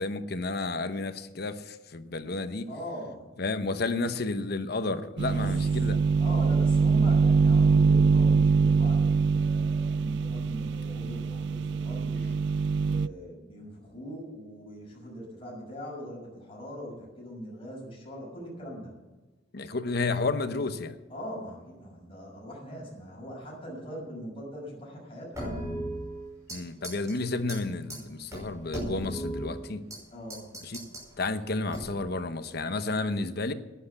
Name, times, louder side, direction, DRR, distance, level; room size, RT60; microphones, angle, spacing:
voice 1, 0.0-2.7 3.4-6.0 19.5-20.9 26.5-29.8 30.6-30.8 31.2-33.5, left 3 dB, 55° left, 10 dB, 0.9 m, -31 dB
voice 2, 2.7-3.3 5.3-5.6 5.9-18.9 21.1-25.6 30.1-30.5, equal, 30° left, -3 dB, 6.2 m, -41 dB
sound 1, 5.2-13.1, right 5 dB, 65° right, 0.3 m, -23 dB
sound 2, 25.3-26.6 26.8-27.1 27.5-27.6 27.9-28.0 28.3-30.0 30.3-31.1 31.7-32.1, right 1 dB, 15° right, 5.8 m, -36 dB
11.0 x 10.5 x 8.1 m, 1.2 s
head